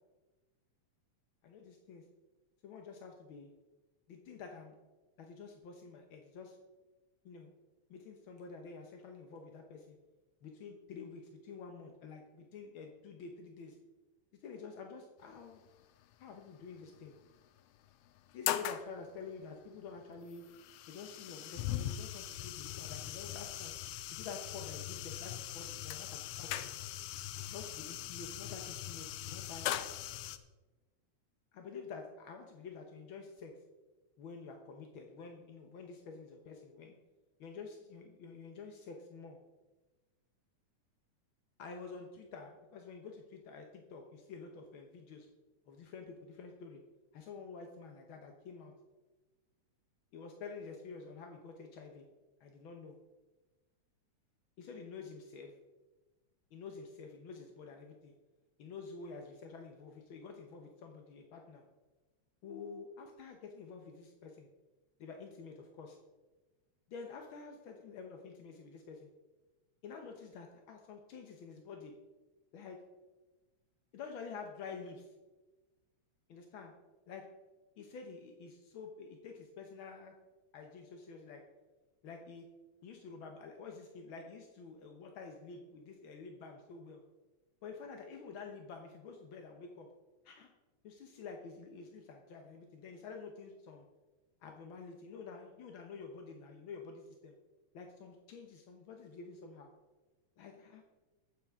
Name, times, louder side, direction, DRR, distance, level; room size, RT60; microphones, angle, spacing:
voice 1, 1.4-2.0 2.6-3.5 4.1-4.7 5.2-6.6 7.2-7.5 7.9-10.0 10.4-13.8 14.4-15.6 16.2-17.1 18.3-20.4 20.9-23.7 24.1-26.7 27.5-29.7 31.5-33.5 34.2-36.9 37.4-39.4 41.6-45.3 45.7-46.8 47.1-48.7 50.1-52.0 52.4-52.9 54.6-55.5 56.5-58.1 58.6-61.6 62.4-64.5 65.0-66.0 66.9-69.1 69.8-71.9 72.5-72.8 73.9-75.1 76.3-76.7 77.1-77.3 77.8-80.1 80.5-81.4 82.0-82.5 82.8-87.0 87.6-89.9 90.2-90.5 90.8-93.8 94.4-97.3 97.7-99.7 100.4-100.8, left 5 dB, 65° left, 3 dB, 1.3 m, -49 dB
sound 1, 15.4-15.7 16.9-17.0 17.4-17.5 18.1-18.9 20.0-30.4, left 12 dB, 85° left, 2.1 m, -40 dB
20.5 x 7.9 x 3.6 m, 1.2 s
omnidirectional pair, 3.4 m